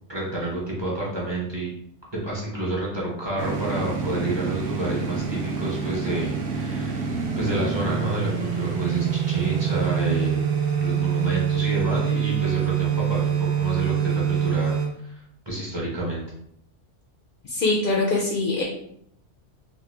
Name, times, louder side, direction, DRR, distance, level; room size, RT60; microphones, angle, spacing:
voice 1, 0.1-1.7 2.2-7.1 7.4-10.3 10.8-15.1 15.5-16.2, right 1 dB, 25° right, -5 dB, 0.7 m, -29 dB
sound 1, 3.4-14.9, right 8 dB, 65° right, 0.9 m, -25 dB
voice 2, 17.4-18.6, left 2 dB, 60° left, -1 dB, 0.6 m, -23 dB
3.0 x 2.2 x 3.3 m, 0.70 s
omnidirectional pair, 1.2 m